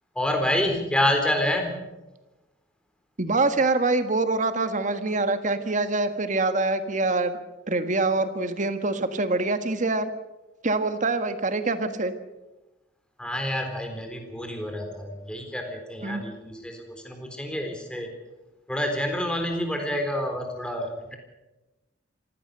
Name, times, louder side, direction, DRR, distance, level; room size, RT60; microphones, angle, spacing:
voice 1, 0.1-1.9 13.2-18.1 18.7-21.2, left 1 dB, 5° left, 3 dB, 4.0 m, -28 dB
voice 2, 3.2-7.3 7.7-10.1 10.6-12.1 16.0-16.2, right 3 dB, 45° right, 9 dB, 1.5 m, -25 dB
26.0 x 16.0 x 6.7 m, 1.0 s
head